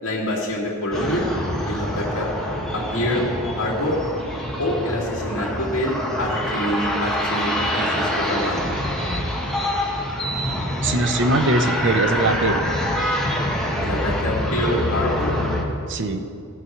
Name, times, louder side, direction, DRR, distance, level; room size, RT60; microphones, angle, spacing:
voice 1, 0.0-1.3 1.6-2.3 2.7-3.3 3.5-4.0 4.6-8.7 13.8-15.4, left 1 dB, 70° left, -3 dB, 2.4 m, -26 dB
sound 1, 0.9-15.6, equal, ahead, 1.3 m, -25 dB
voice 2, 10.8-12.6 15.9-16.2, right 2 dB, 55° right, 6 dB, 0.8 m, -21 dB
17.5 x 6.7 x 4.6 m, 2.4 s
head